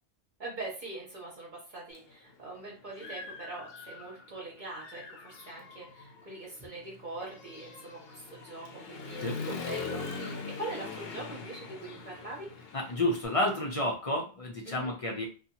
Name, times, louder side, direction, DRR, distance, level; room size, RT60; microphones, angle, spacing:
voice 1, 0.4-12.5 14.6-14.9, right 2 dB, 50° right, -3 dB, 1.0 m, -42 dB
Human voice / Motorcycle, 1.9-2.0 2.5-4.3 4.7-13.3, left 4 dB, 70° left, 0.8 m, -42 dB
voice 2, 12.7-15.3, left 1 dB, 45° left, 0 dB, 0.5 m, -30 dB
2.7 x 2.4 x 2.7 m, 0.35 s
omnidirectional pair, 1.1 m